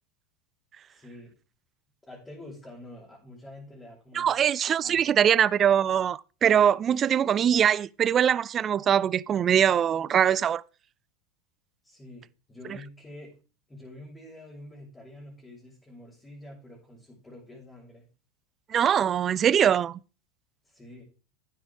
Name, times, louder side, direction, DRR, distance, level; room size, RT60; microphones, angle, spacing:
voice 1, 0.9-1.3 2.1-4.4 4.8-5.3 11.8-13.3 13.7-18.1 20.6-21.0, left 1 dB, 15° left, 5.6 m, -47 dB
voice 2, 4.1-10.6 18.7-20.0, right 9 dB, 35° right, 0.4 m, -22 dB
12.0 x 9.5 x 3.5 m
hypercardioid pair, 100°, 0 cm